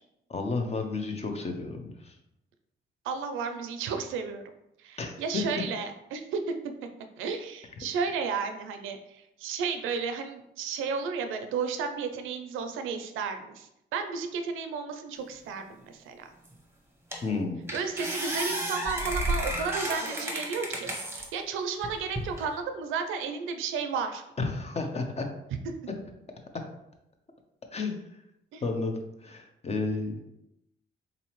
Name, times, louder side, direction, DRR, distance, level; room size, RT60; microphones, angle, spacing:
voice 1, 0.3-2.1 5.0-5.4 17.2-17.6 24.4-25.2 27.7-28.0 28.6-30.1, left 3 dB, 30° left, 4 dB, 0.7 m, -32 dB
voice 2, 3.0-4.4 4.8-6.5 7.2-16.3 17.7-24.2 28.5-28.6, right 5 dB, 90° right, 7 dB, 0.5 m, -33 dB
sound 1, 16.5-16.6 17.1-17.4 17.7-21.3 21.8-22.5, right 1 dB, 10° right, 0.9 m, -32 dB
3.9 x 2.7 x 3.0 m, 0.83 s
cardioid pair, 90°, 20 cm